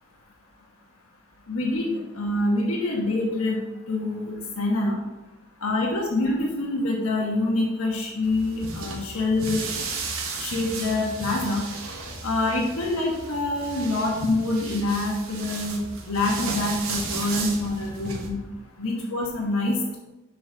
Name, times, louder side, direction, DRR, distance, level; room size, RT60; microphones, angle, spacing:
voice 1, 1.5-3.6 3.9-5.0 5.6-9.6 10.4-11.7 12.2-18.4 18.8-20.0, left 2 dB, 85° left, -1 dB, 1.1 m, -26 dB
sound 1, 8.2-18.3, right 3 dB, 85° right, 1.2 m, -34 dB
6.9 x 4.9 x 3.8 m, 1.0 s
head